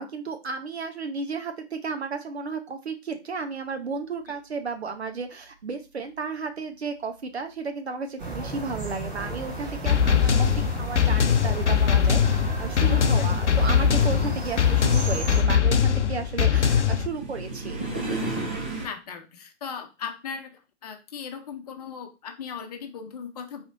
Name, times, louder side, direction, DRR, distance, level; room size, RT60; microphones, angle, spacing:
voice 1, 0.0-17.9, right 4 dB, 65° right, 7 dB, 1.1 m, -33 dB
sound 1, 8.2-15.4, right 3 dB, 50° right, 2.3 m, -34 dB
sound 2, 9.9-17.1, left 8 dB, 85° left, 0.6 m, -21 dB
sound 3, 14.8-18.9, right 2 dB, 10° right, 0.3 m, -35 dB
voice 2, 18.8-23.6, left 6 dB, 35° left, 6 dB, 0.8 m, -38 dB
4.0 x 3.1 x 3.9 m, 0.29 s
figure-of-eight pair, 125°, 34 cm